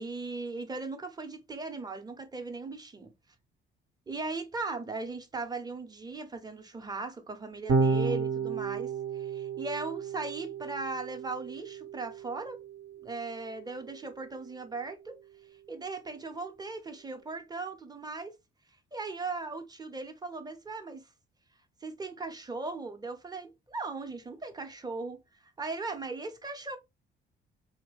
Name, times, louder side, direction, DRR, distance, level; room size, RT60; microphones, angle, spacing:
voice 1, 0.0-3.1 4.1-12.6 13.0-15.2 15.7-18.3 18.9-21.1 21.8-26.8, right 3 dB, 20° right, 0.8 m, -38 dB
Electric guitar / Bass guitar, 7.7-14.1, right 4 dB, 60° right, 0.9 m, -33 dB
3.4 x 2.1 x 3.2 m
cardioid pair, 90°, 20 cm